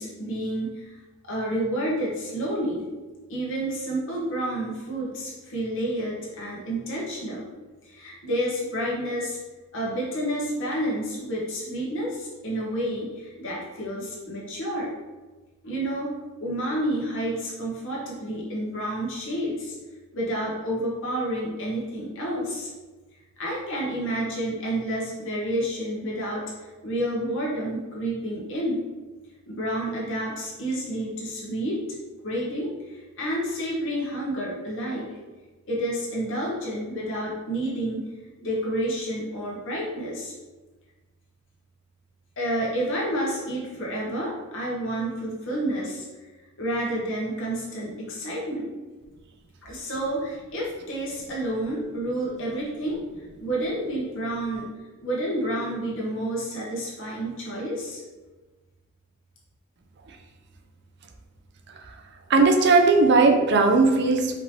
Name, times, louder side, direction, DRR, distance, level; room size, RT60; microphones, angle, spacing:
voice 1, 0.0-2.8 3.3-7.5 7.8-9.4 9.7-14.9 15.6-16.1 16.4-19.7 20.1-22.7 23.4-28.8 29.5-31.8 32.2-35.1 35.7-38.1 38.4-40.3 42.4-46.0 46.6-48.7 49.6-54.7 55.0-58.0, right 1 dB, 65° left, -4 dB, 1.3 m, -29 dB
voice 2, 62.3-64.3, right 3 dB, 55° right, 4 dB, 0.5 m, -18 dB
4.9 x 3.4 x 2.9 m, 1.2 s
head